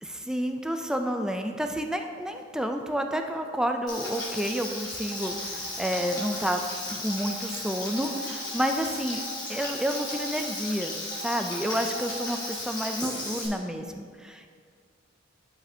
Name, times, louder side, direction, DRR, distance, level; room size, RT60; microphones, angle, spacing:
voice 1, 0.0-9.2 9.5-14.5, equal, 5° right, 5 dB, 0.3 m, -30 dB
Frying (food), 3.9-13.5, left 2 dB, 20° left, 1.5 m, -35 dB
sound 1, 4.0-12.7 13.0-13.2, right 2 dB, 30° right, 1.7 m, -45 dB
10.5 x 4.9 x 2.7 m, 2.1 s
head